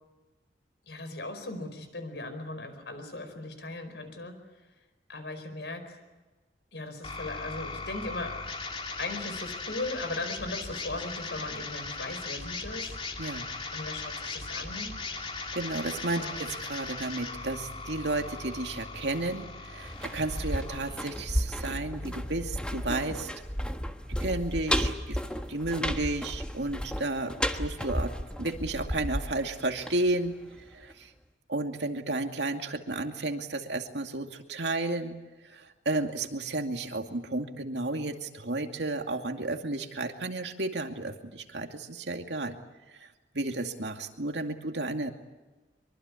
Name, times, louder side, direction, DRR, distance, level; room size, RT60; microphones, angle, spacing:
voice 1, 0.9-4.4 5.1-6.0 6.7-8.4 9.0-13.0 13.7-14.9 16.1-16.7 22.2-22.3, left 2 dB, 80° left, 8 dB, 4.9 m, -38 dB
sound 1, 7.0-23.0, left 3 dB, 30° left, 2.7 m, -39 dB
voice 2, 15.5-23.3 24.2-25.2 25.5-28.1 28.4-30.4 30.7-31.1 31.5-35.2 35.5-42.6 43.0-43.1 43.3-45.1, right 2 dB, 90° right, 5 dB, 2.4 m, -32 dB
sound 2, 19.8-30.6 30.9-31.0, equal, 5° left, 1.4 m, -33 dB
24.0 x 24.0 x 8.4 m, 1.2 s
head